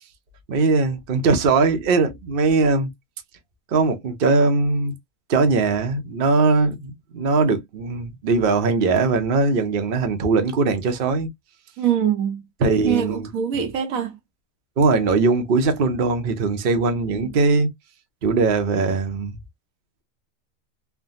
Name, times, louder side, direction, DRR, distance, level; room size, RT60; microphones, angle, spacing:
voice 1, 0.5-2.9 3.7-4.9 5.3-11.3 12.6-13.3 13.5-13.6 14.8-17.7 18.2-19.4, right 4 dB, 50° right, 0.8 m, -20 dB
voice 2, 11.8-12.4 12.8-14.1 17.1-17.3, right 9 dB, 75° right, 1.2 m, -23 dB
3.4 x 2.2 x 2.5 m
omnidirectional pair, 1.5 m